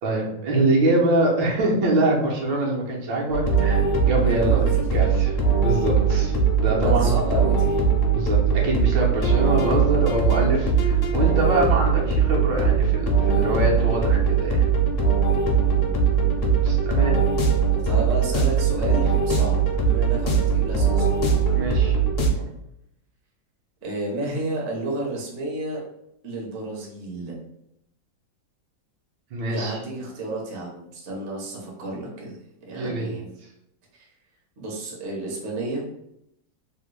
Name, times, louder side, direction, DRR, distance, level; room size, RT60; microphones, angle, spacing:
voice 1, 0.0-4.6 4.9-6.3 6.6-7.2 8.1-8.4 8.6-14.7 16.6-17.2 21.5-22.0 22.4-22.5 29.3-29.8 32.7-33.1, right 1 dB, 75° right, -2 dB, 1.4 m, -24 dB
sound 1, 3.3-22.3, right 5 dB, 65° left, 0.7 m, -20 dB
voice 2, 4.2-4.8 6.7-7.7 15.5-16.8 17.7-21.2 23.8-25.8 26.2-27.3 29.5-32.4 32.7-33.3 33.9-34.1 34.6-35.8, right 2 dB, 55° right, -2 dB, 0.8 m, -31 dB
3.5 x 2.1 x 3.1 m, 0.79 s
omnidirectional pair, 2.1 m